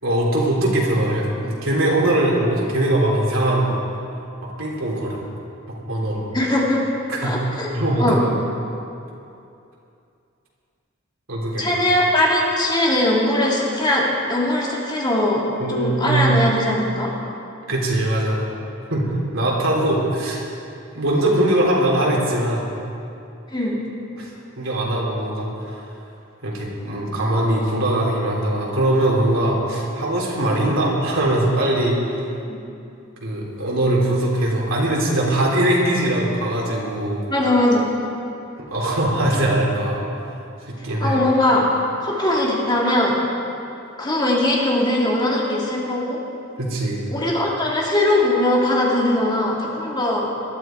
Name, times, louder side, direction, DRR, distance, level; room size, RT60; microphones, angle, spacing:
voice 1, 0.0-3.8 4.4-5.2 5.7-6.2 7.1-7.4 7.7-8.2 11.3-11.8 15.6-16.3 17.7-18.4 18.9-20.4 20.9-22.6 24.2-25.7 26.4-32.0 33.2-37.2 38.7-40.0 40.7-41.2 46.6-47.0, right 1 dB, 85° right, -3 dB, 3.6 m, -21 dB
voice 2, 6.3-6.8 7.2-7.7 8.0-8.2 11.6-15.4 15.7-17.1 23.5-23.8 32.5-32.6 37.3-37.9 41.0-41.7 42.0-43.1 44.0-46.2 47.1-50.3, left 1 dB, 20° left, -4 dB, 2.6 m, -20 dB
20.0 x 13.0 x 4.6 m, 2.7 s
head